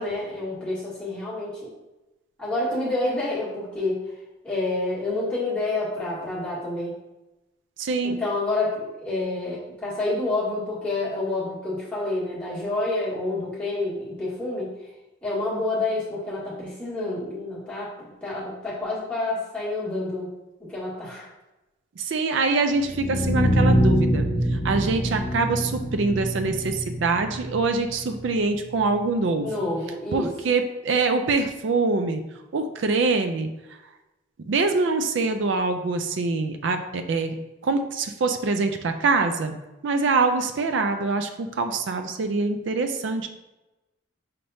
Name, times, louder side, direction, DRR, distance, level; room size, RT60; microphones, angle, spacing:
voice 1, 0.0-1.7 2.4-4.0 4.4-6.9 8.0-14.7 15.2-20.3 20.6-21.3 29.4-30.3, left 2 dB, 5° left, -9 dB, 1.4 m, -28 dB
voice 2, 7.8-8.2 22.0-24.2 24.5-29.5 30.1-32.2 32.5-33.5 34.5-37.4 37.6-39.6 39.8-43.3, right 3 dB, 65° right, 7 dB, 0.4 m, -24 dB
sound 1, 22.8-28.8, right 1 dB, 30° left, 1.4 m, -25 dB
5.7 x 3.4 x 2.6 m, 1.0 s
head